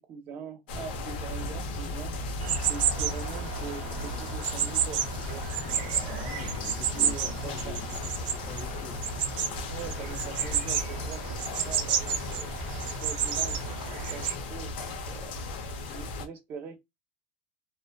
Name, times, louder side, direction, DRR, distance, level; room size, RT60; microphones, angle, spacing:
voice 1, 0.1-2.1 2.7-6.3 6.9-7.8 9.7-11.4 11.7-12.5 13.0-15.4 15.9-16.8, right 6 dB, 40° right, 0.6 m, -42 dB
sound 1, 0.7-16.3, left 2 dB, 85° left, 0.8 m, -36 dB
sound 2, 2.4-14.3, right 8 dB, 80° right, 0.6 m, -31 dB
voice 2, 6.1-9.0, left 5 dB, 35° left, 0.6 m, -44 dB
2.4 x 2.3 x 2.2 m
supercardioid pair, 140°, 5 cm